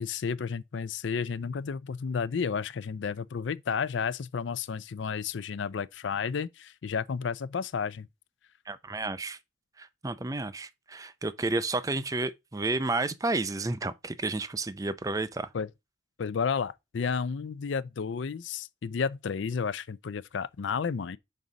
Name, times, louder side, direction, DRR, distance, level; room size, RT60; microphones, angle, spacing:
voice 1, 0.0-8.1 15.5-15.7 16.2-21.2, left 6 dB, 80° left, 0.4 m, -32 dB
voice 2, 8.7-9.4 9.8-15.5, right 2 dB, 20° right, 0.4 m, -31 dB
5.4 x 4.0 x 6.0 m
head